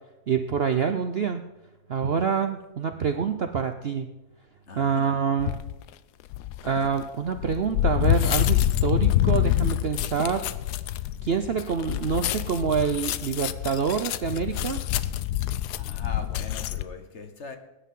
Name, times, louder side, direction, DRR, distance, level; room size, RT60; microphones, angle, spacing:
voice 1, 0.3-1.5 1.9-4.1 4.7-5.6 6.6-10.4 11.2-14.8, right 6 dB, 55° right, 7 dB, 0.7 m, -26 dB
voice 2, 4.7-5.1 15.7-17.6, left 4 dB, 50° left, 6 dB, 1.5 m, -41 dB
sound 1, 5.4-5.7 6.3-16.8, left 13 dB, 85° left, 1.2 m, -26 dB
19.5 x 10.0 x 3.8 m, 1.0 s
omnidirectional pair, 1.7 m